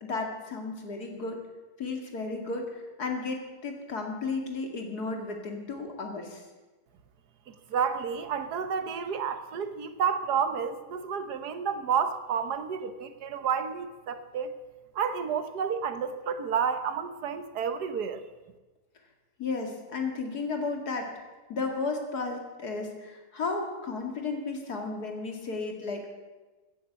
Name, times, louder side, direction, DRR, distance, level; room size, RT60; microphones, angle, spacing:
voice 1, 0.0-1.4 1.8-6.4 19.4-21.1 21.5-26.1, left 3 dB, 75° left, 3 dB, 2.8 m, -33 dB
voice 2, 7.5-14.6 14.9-18.2, right 7 dB, 85° right, 10 dB, 1.6 m, -30 dB
16.0 x 9.7 x 8.0 m, 1.2 s
omnidirectional pair, 1.7 m